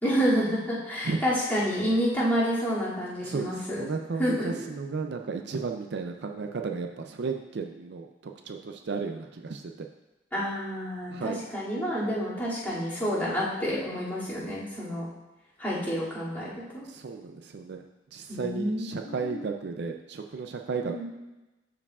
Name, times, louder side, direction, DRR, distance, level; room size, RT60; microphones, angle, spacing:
voice 1, 0.0-3.8 4.2-4.5 10.3-15.0 15.6-16.8 18.3-19.4 20.8-21.0, equal, 10° left, -11 dB, 2.4 m, -29 dB
voice 2, 3.2-9.9 11.1-11.4 16.8-17.8 18.1-21.0, right 4 dB, 60° right, 4 dB, 0.4 m, -34 dB
12.5 x 4.7 x 2.4 m, 1.1 s
head